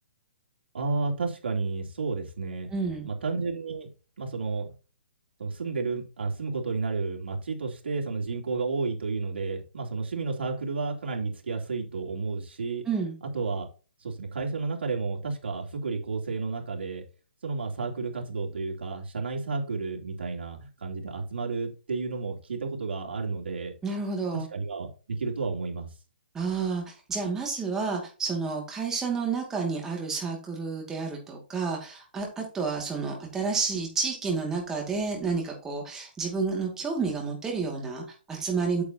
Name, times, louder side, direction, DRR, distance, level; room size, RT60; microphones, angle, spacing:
voice 1, 0.7-2.7 3.0-3.9 4.2-4.7 5.4-12.8 13.3-13.7 14.0-17.0 17.4-23.7 24.3-25.9, right 4 dB, 85° right, 0 dB, 2.9 m, -31 dB
voice 2, 2.7-3.1 12.9-13.2 23.8-24.5 26.3-38.8, right 4 dB, 10° right, 0 dB, 2.3 m, -30 dB
8.5 x 7.6 x 2.9 m, 0.34 s
hypercardioid pair, 165°, 6 cm